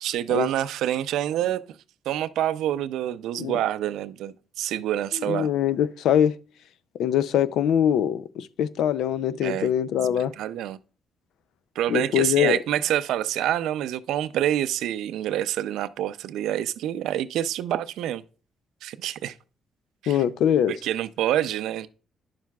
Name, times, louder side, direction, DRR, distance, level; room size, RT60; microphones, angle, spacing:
voice 1, 0.0-1.6 2.1-5.5 9.4-9.7 10.4-10.8 11.8-18.2 18.8-19.4 20.0-20.2 20.7-21.9, right 12 dB, 85° right, 0.4 m, -27 dB
voice 2, 5.1-6.4 7.0-10.3 11.9-12.6 20.1-20.7, left 10 dB, 80° left, 0.4 m, -23 dB
10.5 x 7.3 x 2.3 m
cardioid pair, 90°, 0 cm